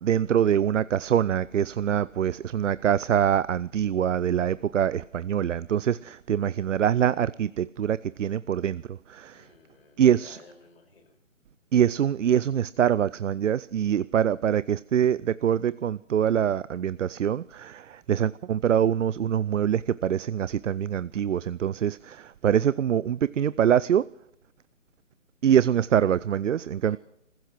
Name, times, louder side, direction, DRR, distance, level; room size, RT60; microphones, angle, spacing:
voice 1, 0.0-9.5 10.0-10.4 11.7-24.1 25.4-27.0, right 9 dB, 70° right, 0.5 m, -24 dB
voice 2, 9.3-11.2 26.8-27.0, left 3 dB, 50° left, 5.4 m, -54 dB
27.0 x 15.5 x 3.1 m
figure-of-eight pair, 155°, 39 cm